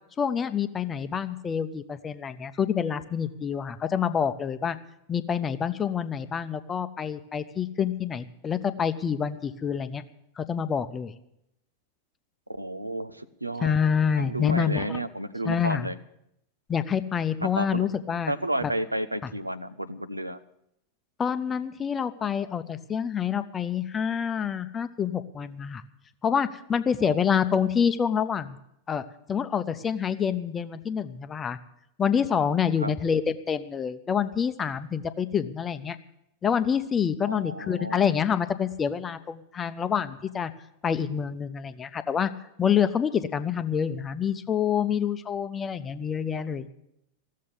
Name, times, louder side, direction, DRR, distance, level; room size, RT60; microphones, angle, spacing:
voice 1, 0.2-4.8 5.1-10.0 10.4-11.1 13.6-15.0 15.4-15.9 16.7-18.3 18.6-18.7 19.2-19.3 21.2-25.8 26.2-28.6 28.9-31.6 32.0-36.0 36.4-40.5 40.8-42.3 42.6-46.7, left 7 dB, 20° left, 11 dB, 0.7 m, -27 dB
voice 2, 12.5-13.7 14.2-15.9 17.4-17.9 18.3-20.4 27.0-27.2 32.8-32.9 37.3-38.1, right 1 dB, 85° right, 13 dB, 0.6 m, -32 dB
15.0 x 7.5 x 9.6 m, 0.79 s
figure-of-eight pair, 90°, 0 cm